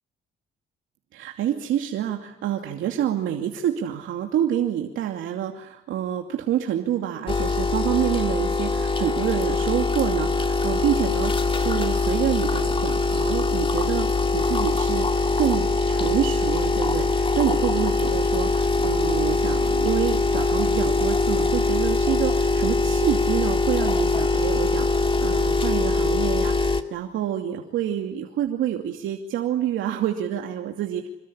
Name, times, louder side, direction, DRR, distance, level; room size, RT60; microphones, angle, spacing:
voice 1, 1.1-31.1, right 10 dB, 85° right, 3 dB, 2.7 m, -27 dB
sound 1, 7.3-26.8, left 3 dB, 25° left, 2.4 m, -22 dB
27.5 x 21.5 x 10.0 m, 0.81 s
cardioid pair, 90°, 20 cm